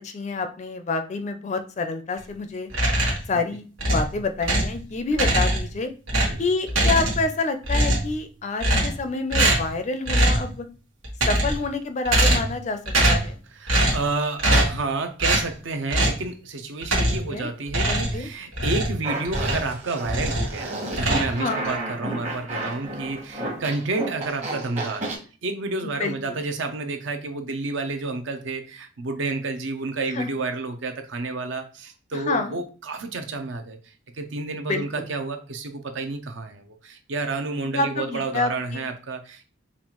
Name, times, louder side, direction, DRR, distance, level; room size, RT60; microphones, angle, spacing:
voice 1, 0.0-2.7 3.3-5.9 6.4-10.7 11.3-12.8 13.1-13.4 17.3-17.5 17.8-18.3 21.3-21.7 26.0-26.4 30.1-30.3 32.1-32.6 34.7-35.1 37.6-38.8, left 3 dB, 35° left, 8 dB, 0.4 m, -28 dB
sound 1, 2.7-3.3 3.8-4.8 5.1-5.8 6.1-7.4 7.6-8.2 8.6-9.0 9.3-9.7 10.1-10.5 11.0-11.7 12.0-12.6 12.9-13.3 13.7-14.1 14.4-14.8 15.2-15.5 15.9-16.2 16.8-17.3 17.7-19.7 20.0-20.6 20.9-21.8, right 1 dB, 90° right, 1.4 m, -22 dB
voice 2, 6.1-6.4 13.6-25.2 25.4-39.5, right 3 dB, 65° right, 6 dB, 0.6 m, -30 dB
Fart, 19.0-25.2, right 2 dB, 35° right, 1.1 m, -32 dB
5.4 x 2.4 x 3.0 m, 0.36 s
head